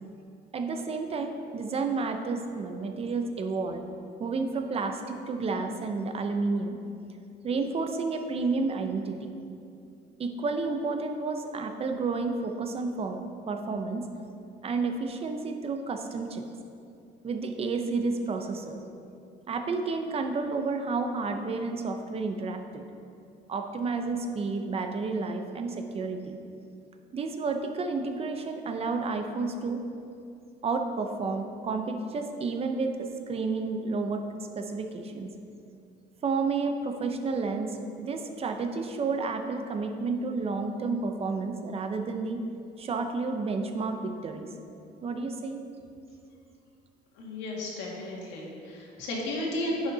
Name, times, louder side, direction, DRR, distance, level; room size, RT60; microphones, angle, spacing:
voice 1, 0.5-3.8 4.2-6.8 7.4-9.3 10.2-14.1 14.6-16.4 17.2-18.8 19.5-22.8 23.5-26.4 27.1-29.8 30.6-35.3 36.2-42.4 42.8-44.5 45.0-45.6, right 4 dB, 35° right, 5 dB, 0.6 m, -31 dB
voice 2, 47.2-49.9, left 1 dB, 85° left, -2 dB, 1.9 m, -33 dB
10.0 x 5.5 x 3.9 m, 2.6 s
cardioid pair, 130°, 18 cm